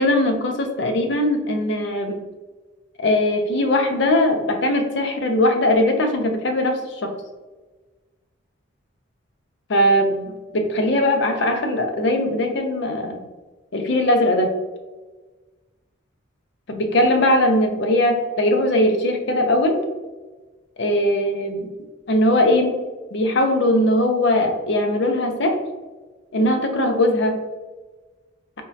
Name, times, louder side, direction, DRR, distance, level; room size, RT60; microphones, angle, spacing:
voice 1, 0.0-2.2 3.0-7.1 9.7-13.2 13.7-14.6 16.7-19.8 20.8-21.6 22.1-22.7 23.1-25.6 26.3-27.4, left 1 dB, 55° left, 4 dB, 0.5 m, -20 dB
3.5 x 3.0 x 2.7 m, 1.3 s
head